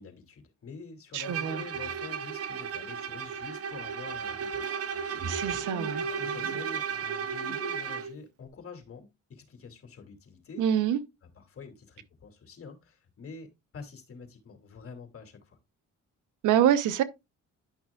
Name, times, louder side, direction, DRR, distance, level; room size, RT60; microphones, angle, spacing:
voice 1, 0.0-10.6 11.3-13.5 13.7-15.6, left 5 dB, 50° left, 2.8 m, -47 dB
voice 2, 1.1-1.6 5.2-6.0 10.6-11.0 16.4-17.0, right 10 dB, 85° right, 1.0 m, -25 dB
Bowed string instrument, 1.2-8.2, right 6 dB, 50° right, 0.9 m, -34 dB
11.0 x 6.0 x 2.4 m
cardioid pair, 90°, 30 cm